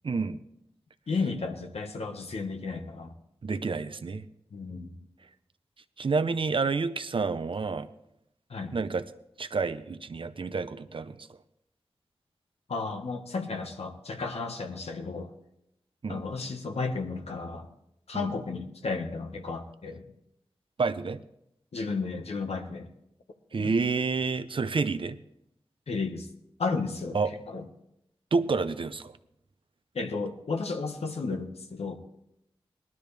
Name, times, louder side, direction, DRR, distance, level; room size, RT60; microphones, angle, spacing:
voice 1, 0.0-0.4 3.4-4.2 6.0-7.9 8.7-9.0 9.4-11.2 16.0-16.2 18.1-18.3 20.8-21.2 23.5-25.2 27.1-27.3 28.3-29.1, right 4 dB, 60° right, 11 dB, 0.7 m, -29 dB
voice 2, 1.1-3.1 4.5-5.0 8.5-8.7 12.7-15.3 16.1-17.7 18.1-20.0 21.7-22.9 23.6-23.7 25.9-26.3 26.6-27.2 27.5-27.6 29.9-32.0, left 4 dB, 85° left, 4 dB, 1.5 m, -33 dB
19.5 x 12.5 x 3.4 m, 0.78 s
wide cardioid pair, 90°, 10 cm